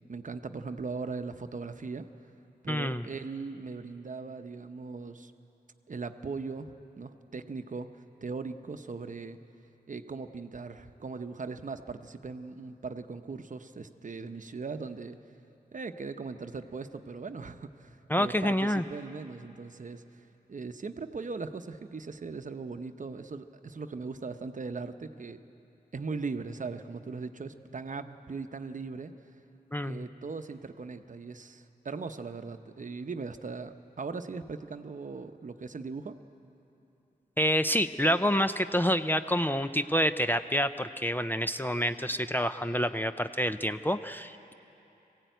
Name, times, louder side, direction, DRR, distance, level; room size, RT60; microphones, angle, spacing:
voice 1, 0.1-2.1 2.6-5.3 5.9-9.4 9.9-15.2 15.7-25.4 25.9-29.1 29.9-36.2, right 4 dB, 50° right, 8 dB, 0.8 m, -39 dB
voice 2, 2.7-3.1 18.1-18.8 29.7-30.1 37.4-44.5, equal, 10° left, 10 dB, 0.5 m, -28 dB
21.0 x 16.0 x 9.2 m, 2.9 s
wide cardioid pair, 80°, 17 cm